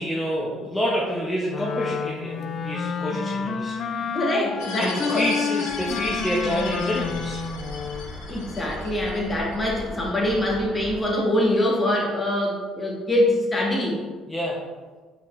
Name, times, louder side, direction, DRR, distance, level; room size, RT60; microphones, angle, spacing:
voice 1, 0.0-4.2 4.8-7.4 14.3-14.6, equal, 10° left, -5 dB, 0.9 m, -28 dB
Wind instrument woodwind instrument, 1.5-8.2, left 5 dB, 55° left, 0.3 m, -29 dB
voice 2, 4.1-5.2 8.3-14.0, left 1 dB, 25° left, -2 dB, 1.4 m, -24 dB
sound 1, 4.6-9.6, left 4 dB, 80° left, 0.7 m, -38 dB
sound 2, 5.7-11.0, left 1 dB, 10° right, 1.1 m, -39 dB
4.1 x 4.1 x 3.2 m, 1.4 s
supercardioid pair, 70°, 0 cm